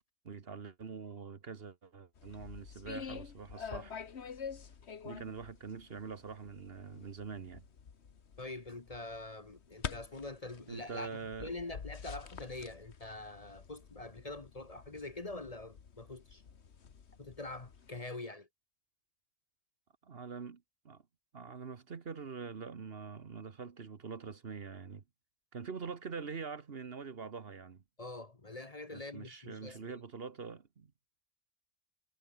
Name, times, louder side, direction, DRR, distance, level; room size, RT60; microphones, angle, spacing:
voice 1, 0.2-3.9 5.0-7.6 10.7-11.5 20.0-21.0 21.3-25.0 25.5-27.8 28.9-30.9, right 5 dB, 50° right, 1.4 m, -44 dB
sound 1, 2.2-18.0, left 6 dB, 60° left, 1.6 m, -48 dB
voice 2, 8.4-16.4 17.2-18.5 28.0-30.0, left 2 dB, 30° left, 1.3 m, -45 dB
omnidirectional pair, 1.3 m